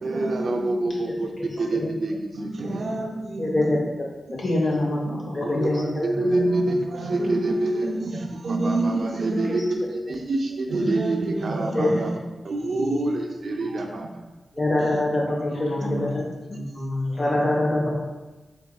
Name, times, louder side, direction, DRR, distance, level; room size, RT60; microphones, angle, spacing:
voice 1, 0.0-1.3 1.6-3.8 5.4-12.2 12.4-14.1 14.8-15.0, right 2 dB, 50° right, 2 dB, 0.5 m, -26 dB
voice 2, 3.4-4.4 5.3-6.1 9.5-9.6 11.7-12.0 14.5-15.7 16.0-16.2 17.2-18.0, left 1 dB, 30° left, -3 dB, 0.4 m, -24 dB
voice 3, 4.4-6.3 15.2-17.9, left 1 dB, 85° left, -3 dB, 1.0 m, -29 dB
4.6 x 3.5 x 2.3 m, 1.1 s
wide cardioid pair, 165°, 0 cm